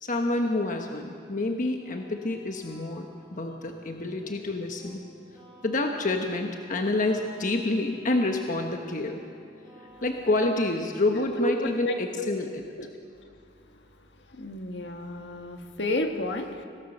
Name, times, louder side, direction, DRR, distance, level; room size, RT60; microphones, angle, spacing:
voice 1, 0.0-5.0 5.6-9.2 10.0-12.5, left 2 dB, 45° left, 3 dB, 1.2 m, -28 dB
sound 1, 1.8-11.0, left 1 dB, 5° left, 5.8 m, -54 dB
voice 2, 11.1-12.3 12.8-12.9 13.2-13.3 14.3-16.6, left 2 dB, 70° left, 4 dB, 1.8 m, -31 dB
25.0 x 17.5 x 6.6 m, 2.4 s
head